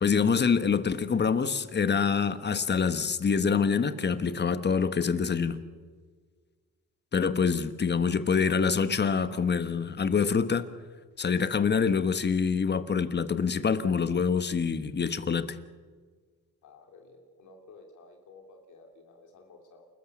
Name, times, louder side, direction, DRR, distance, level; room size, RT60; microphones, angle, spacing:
voice 1, 0.0-5.6 7.1-10.7 11.2-15.6, left 6 dB, 35° left, 1.4 m, -26 dB
voice 2, 16.6-19.9, left 3 dB, 75° left, 3.5 m, -53 dB
29.0 x 13.5 x 7.4 m
cardioid pair, 90°, 30 cm